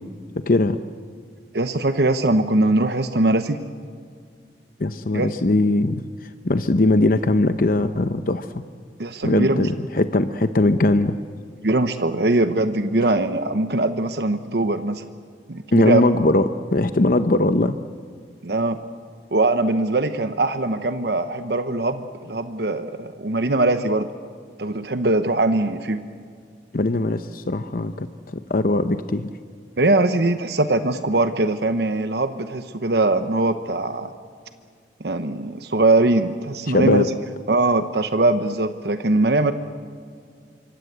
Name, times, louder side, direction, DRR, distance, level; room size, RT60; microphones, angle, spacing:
voice 1, 0.3-0.8 4.8-8.6 9.2-11.2 15.7-17.8 26.7-29.3 36.7-37.1, left 2 dB, 50° left, 9 dB, 0.8 m, -20 dB
voice 2, 1.5-3.6 5.1-5.3 9.0-9.7 11.6-15.0 15.5-16.0 18.4-18.8 19.3-24.1 24.6-26.0 29.8-34.1 35.0-37.0 37.5-39.5, right 2 dB, 65° right, 10 dB, 1.0 m, -21 dB
26.0 x 24.5 x 8.0 m, 2.1 s
head